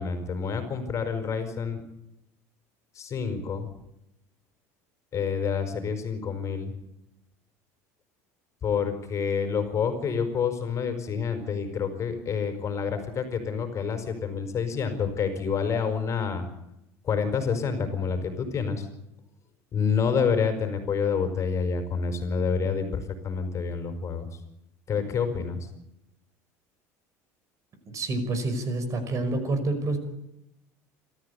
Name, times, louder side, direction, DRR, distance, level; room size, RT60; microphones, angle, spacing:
voice 1, 0.0-1.8 2.9-3.7 5.1-6.7 8.6-16.4 17.0-18.9 19.7-24.3 24.9-25.6, left 6 dB, 40° left, 7 dB, 4.9 m, -28 dB
voice 2, 27.9-30.0, right 2 dB, 40° right, 10 dB, 5.4 m, -28 dB
27.0 x 13.5 x 8.4 m, 0.87 s
supercardioid pair, 100°, 8 cm